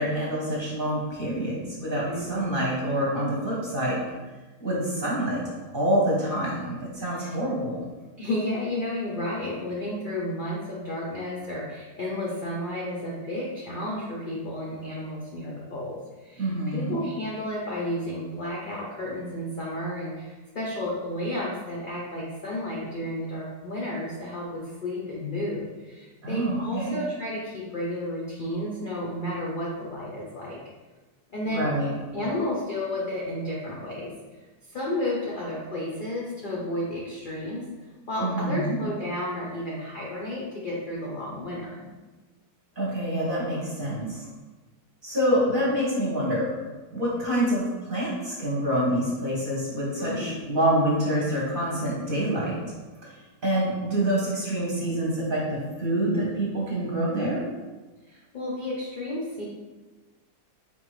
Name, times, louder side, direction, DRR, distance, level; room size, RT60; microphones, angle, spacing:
voice 1, 0.0-4.0 4.6-5.4 5.7-7.8 16.4-17.0 26.2-26.9 31.4-32.0 38.2-38.8 42.8-44.3 45.0-46.5 46.9-52.6 53.4-57.4, right 1 dB, 40° right, -5 dB, 0.8 m, -26 dB
voice 2, 2.1-2.6 7.2-7.3 8.2-30.6 31.3-31.7 32.1-34.1 34.7-37.7 38.1-41.9 50.0-50.4 58.1-59.4, left 1 dB, 65° left, -5 dB, 0.5 m, -32 dB
4.4 x 2.6 x 3.1 m, 1.2 s
omnidirectional pair, 1.7 m